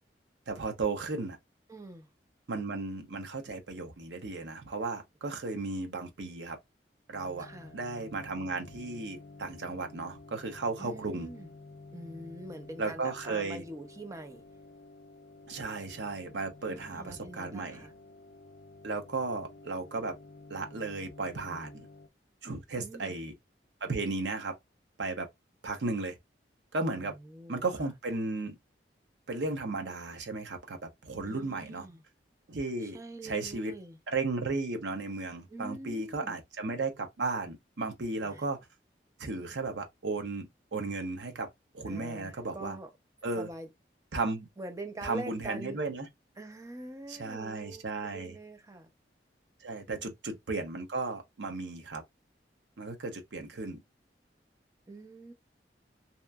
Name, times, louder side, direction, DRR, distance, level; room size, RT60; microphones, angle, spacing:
voice 1, 0.5-1.4 2.5-6.6 7.1-11.3 12.8-13.6 15.5-17.9 18.8-20.2 20.5-21.9 22.4-23.3 23.8-24.5 25.0-25.3 25.6-26.1 26.7-27.2 27.5-28.6 29.3-31.9 32.5-33.0 33.2-33.8 34.1-38.6 39.2-41.5 41.7-42.8 43.2-43.5 44.1-44.5 45.0-46.1 47.1-48.4 49.6-52.0 52.8-53.8, right 3 dB, 85° right, 0.7 m, -35 dB
voice 2, 1.7-2.1 7.4-7.8 10.8-11.5 11.9-14.4 16.6-17.9 21.5-21.8 22.8-23.2 27.0-27.9 31.2-32.0 32.8-34.0 35.5-36.4 38.2-38.5 41.8-42.9 43.4-43.7 44.6-45.8 46.4-48.9 49.9-50.1 54.9-55.3, right 2 dB, 20° right, 0.5 m, -44 dB
sound 1, 7.1-22.1, left 3 dB, 60° left, 0.4 m, -51 dB
2.8 x 2.5 x 2.2 m
head